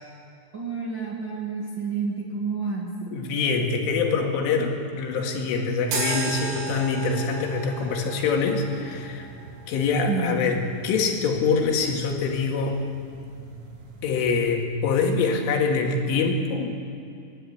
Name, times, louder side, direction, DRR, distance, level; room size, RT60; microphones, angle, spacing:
voice 1, 0.5-2.9 10.1-10.4, right 5 dB, 40° right, -3 dB, 1.7 m, -29 dB
voice 2, 3.1-9.2 9.7-10.6 10.8-12.8 14.0-16.7, left 4 dB, 85° left, 2 dB, 4.6 m, -24 dB
sound 1, 5.9-14.4, right 3 dB, 80° right, 5.9 m, -37 dB
25.0 x 12.5 x 10.0 m, 2.5 s
omnidirectional pair, 5.5 m